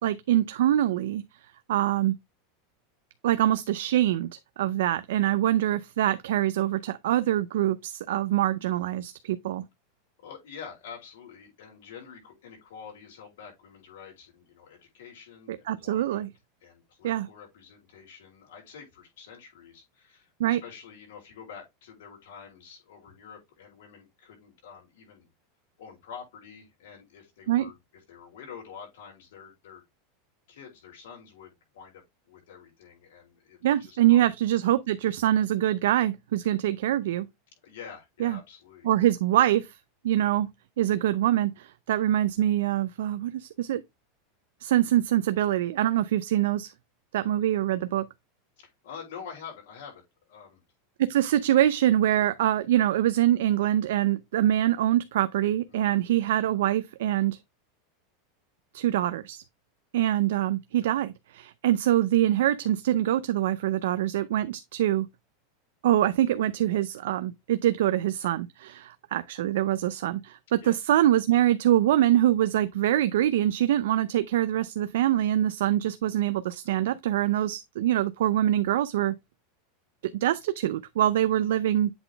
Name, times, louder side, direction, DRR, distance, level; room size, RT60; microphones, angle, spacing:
voice 1, 0.0-1.2 1.7-2.1 3.2-9.6 15.5-16.3 17.0-17.3 20.4-20.6 27.5-27.7 33.6-37.3 38.2-38.4 38.8-39.7 40.0-40.5 40.8-43.8 44.6-46.7 47.1-48.0 51.0-57.4 58.7-59.4 59.9-65.1 65.8-79.1 80.1-81.9, right 12 dB, 80° right, 0.4 m, -24 dB
voice 2, 10.2-16.3 16.6-25.3 25.8-29.8 30.5-34.3 37.6-38.9 48.6-50.6 55.7-55.9 70.6-70.8, left 7 dB, 85° left, 4.9 m, -47 dB
7.9 x 4.0 x 3.3 m
supercardioid pair, 165°, 0 cm